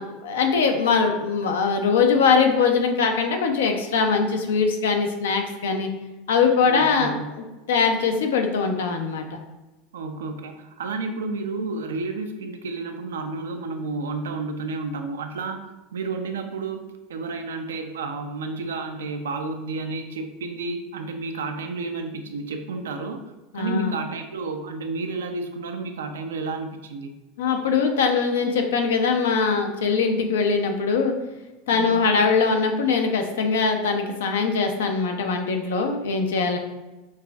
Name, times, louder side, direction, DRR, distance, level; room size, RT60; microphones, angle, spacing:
voice 1, 0.0-5.9 6.3-9.4 23.5-23.9 27.4-31.1 31.7-36.6, left 5 dB, 85° left, 4 dB, 0.5 m, -22 dB
voice 2, 6.6-7.3 9.9-15.6 15.9-27.1 31.7-32.1, right 3 dB, 90° right, 6 dB, 0.4 m, -31 dB
5.4 x 2.5 x 2.3 m, 1.1 s
hypercardioid pair, 95°, 0 cm